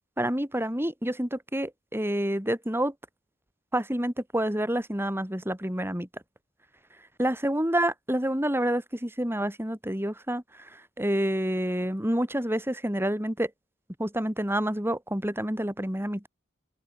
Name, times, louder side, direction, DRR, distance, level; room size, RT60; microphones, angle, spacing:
voice 1, 0.2-2.9 3.7-6.1 7.2-13.5 14.0-16.3, right 1 dB, 10° right, 4.7 m, -28 dB
head